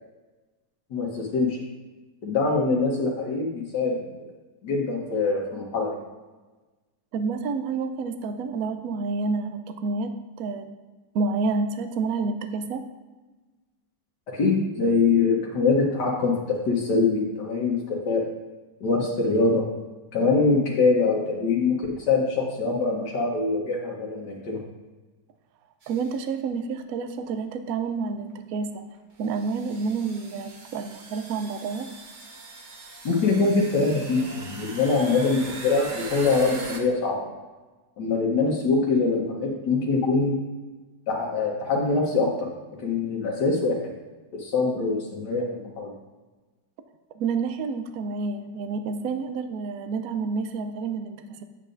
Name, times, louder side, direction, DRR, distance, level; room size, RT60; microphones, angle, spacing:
voice 1, 0.9-1.6 2.2-4.0 4.6-5.9 14.3-18.2 18.8-19.6 20.1-21.8 22.1-24.6 33.0-37.3 38.0-40.3 41.1-42.5 42.8-43.8 44.4-45.9, left 4 dB, 75° left, -3 dB, 1.7 m, -23 dB
voice 2, 7.1-10.7 11.1-12.9 25.9-28.9 29.2-31.9 47.1-51.4, right 4 dB, 70° right, 8 dB, 1.0 m, -29 dB
sound 1, 25.8-26.2 27.1-27.2 28.3-28.4 29.2-36.8, right 3 dB, 40° right, 0.7 m, -41 dB
8.4 x 7.9 x 2.6 m, 1.2 s
omnidirectional pair, 1.8 m